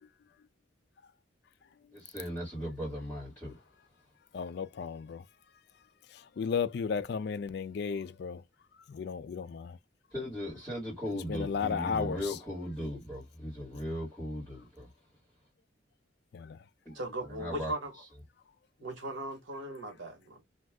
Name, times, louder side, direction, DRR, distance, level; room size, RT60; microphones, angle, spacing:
voice 1, 1.9-3.6 10.1-14.9 16.8-17.0 17.3-18.0, equal, 5° left, 1.5 m, -38 dB
voice 2, 4.3-5.2 6.4-8.4 8.9-9.8 11.3-12.2 16.3-16.6, left 6 dB, 55° left, 0.3 m, -34 dB
voice 3, 16.9-17.9 18.8-20.4, right 1 dB, 75° right, 1.1 m, -38 dB
2.6 x 2.3 x 3.4 m
head